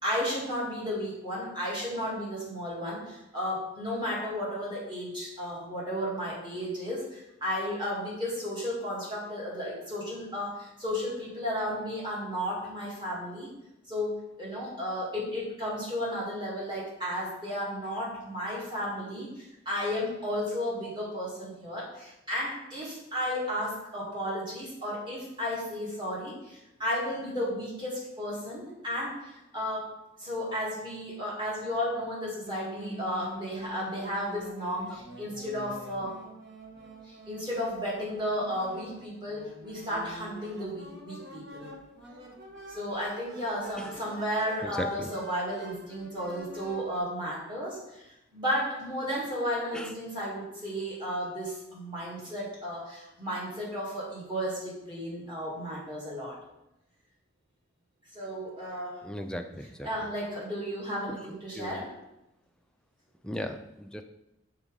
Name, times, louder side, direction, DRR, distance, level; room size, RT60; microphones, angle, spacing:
voice 1, 0.0-13.5 13.9-29.9 30.2-36.1 37.0-41.7 42.7-56.4 58.1-59.0 59.8-61.9, equal, 25° right, -6 dB, 2.0 m, -33 dB
sound 1, 32.5-47.0, right 1 dB, 55° right, 1.2 m, -46 dB
voice 2, 44.6-45.1 49.7-50.0 59.0-59.9 61.1-61.8 63.2-64.0, equal, 5° left, 6 dB, 0.3 m, -37 dB
6.0 x 3.6 x 5.2 m, 0.89 s
head